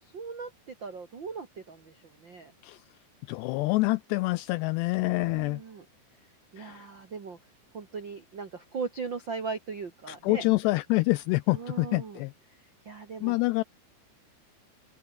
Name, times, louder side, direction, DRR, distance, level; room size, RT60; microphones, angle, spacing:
voice 1, 0.0-2.5 4.9-5.8 6.5-7.4 7.7-10.4 11.5-12.2 12.5-13.4, right 5 dB, 75° right, 1.1 m, -39 dB
voice 2, 3.3-5.6 6.6-6.9 10.2-12.3 13.2-13.6, left 22 dB, 85° left, 2.4 m, -26 dB
open air
omnidirectional pair, 5.3 m